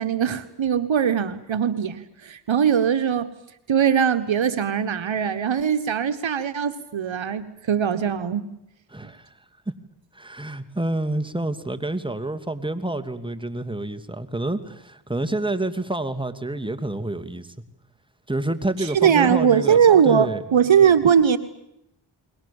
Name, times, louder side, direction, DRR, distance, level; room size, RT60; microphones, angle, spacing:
voice 1, 0.0-3.3 3.7-8.5 18.8-21.4, right 8 dB, 65° right, 10 dB, 1.4 m, -20 dB
voice 2, 8.9-9.3 9.7-9.8 10.1-17.5 18.3-19.8 20.1-20.4, right 2 dB, 10° right, 7 dB, 2.7 m, -28 dB
30.0 x 22.0 x 7.2 m, 0.79 s
cardioid pair, 40°, 49 cm